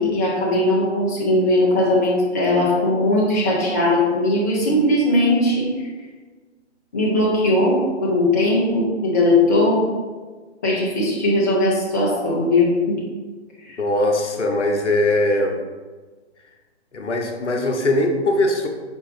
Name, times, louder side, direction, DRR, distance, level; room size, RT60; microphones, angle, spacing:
voice 1, 0.0-5.7 6.9-9.9 10.6-13.0 13.6-13.8, left 1 dB, 15° left, -5 dB, 0.4 m, -19 dB
voice 2, 13.8-15.6 16.9-18.7, left 1 dB, 75° left, 3 dB, 0.8 m, -20 dB
5.1 x 2.8 x 3.1 m, 1.4 s
figure-of-eight pair, 130°, 35 cm